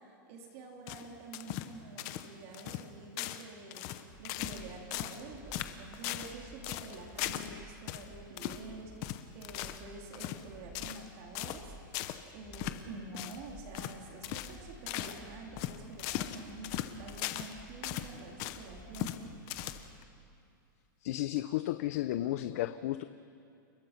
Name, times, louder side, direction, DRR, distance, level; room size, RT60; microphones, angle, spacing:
voice 1, 0.0-3.9 4.2-11.7 12.3-19.3, right 3 dB, 35° right, 1 dB, 3.1 m, -48 dB
sound 1, 0.9-1.7 2.0-2.3 2.5-2.9 3.2-3.5 3.7-4.6 4.9-5.2 5.5-6.3 6.6-7.5 7.9-8.0 8.4-8.6 9.0-9.8 10.1-10.4 10.7-11.1 11.3-11.6 11.9-12.2 12.5-12.8 13.1-13.4 13.7-14.0 14.2-14.6 14.9-15.2 15.6-17.5 17.8-18.6 18.9-19.2 19.5-20.0, left 14 dB, 30° left, 0.9 m, -38 dB
sound 2, 4.1-20.0, right 1 dB, 5° right, 3.3 m, -54 dB
voice 2, 21.0-23.0, left 14 dB, 45° left, 12 dB, 0.6 m, -33 dB
29.5 x 21.5 x 5.8 m, 2.5 s
supercardioid pair, 170°, 11 cm